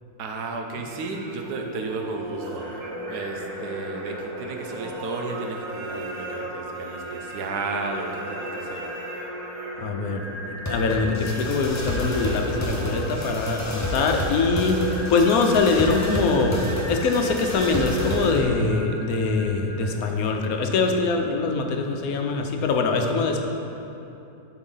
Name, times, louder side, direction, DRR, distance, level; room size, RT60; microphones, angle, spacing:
voice 1, 0.2-2.6 3.1-8.8, right 3 dB, 90° right, 3 dB, 1.3 m, -33 dB
Singing, 0.7-20.3, right 1 dB, 70° right, 1.3 m, -38 dB
sound 1, 2.4-18.4, left 1 dB, 20° left, 0.5 m, -32 dB
voice 2, 9.8-10.2 10.5-16.6 16.9-23.4, left 3 dB, 70° left, 3 dB, 1.1 m, -23 dB
12.0 x 4.5 x 3.9 m, 2.9 s
omnidirectional pair, 1.6 m